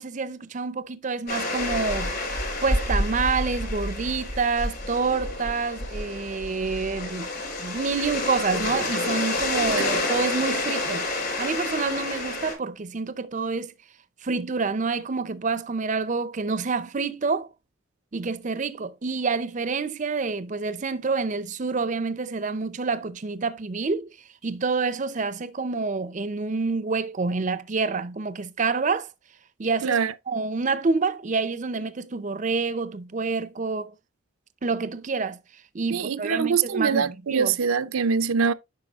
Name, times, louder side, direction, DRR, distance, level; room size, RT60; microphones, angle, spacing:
voice 1, 0.0-7.3 7.6-11.1 11.4-13.7 14.2-17.5 18.1-24.2 24.4-29.1 29.6-30.0 30.3-33.9 34.6-35.4 35.7-37.5, right 4 dB, 35° right, 0.5 m, -27 dB
sound 1, 1.3-12.5, left 2 dB, 45° left, 4.7 m, -29 dB
voice 2, 29.8-30.1 35.9-38.5, right 6 dB, 90° right, 0.5 m, -24 dB
9.6 x 5.7 x 2.4 m
head